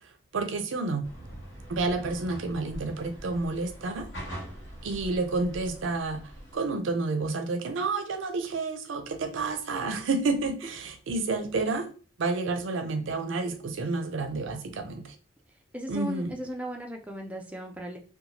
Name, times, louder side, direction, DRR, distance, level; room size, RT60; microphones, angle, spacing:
voice 1, 0.3-1.1 1.7-4.1 4.8-6.2 6.5-11.9 12.2-15.1 15.9-16.3, right 3 dB, 70° right, 8 dB, 0.4 m, -30 dB
sound 1, 1.0-6.6, equal, 65° left, 0.9 m, -43 dB
voice 2, 15.7-18.0, equal, 5° right, 1 dB, 0.3 m, -36 dB
2.7 x 2.2 x 2.8 m, 0.38 s
head